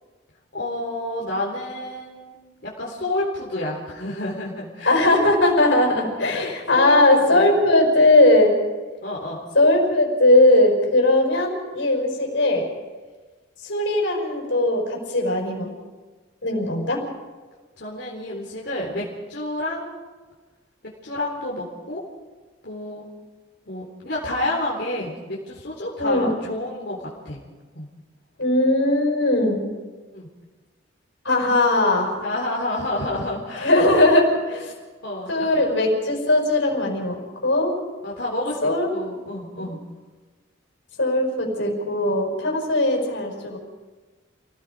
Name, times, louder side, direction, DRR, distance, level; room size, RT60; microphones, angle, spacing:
voice 1, 0.5-2.4 2.6-5.1 5.9-7.5 9.0-9.4 17.8-20.0 21.0-22.0 22.6-23.1 23.7-27.4 27.7-27.9 30.1-30.3 32.2-33.8 35.0-35.5 38.0-39.8, left 1 dB, 55° left, -5 dB, 4.1 m, -30 dB
voice 2, 4.8-8.5 9.5-12.7 13.6-15.7 16.4-17.0 26.0-26.3 28.4-29.6 31.2-32.1 33.6-34.7 35.3-37.2 37.4-37.8 38.6-38.9 41.0-43.6, left 1 dB, 75° left, 1 dB, 5.9 m, -19 dB
29.0 x 18.5 x 5.1 m, 1.3 s
head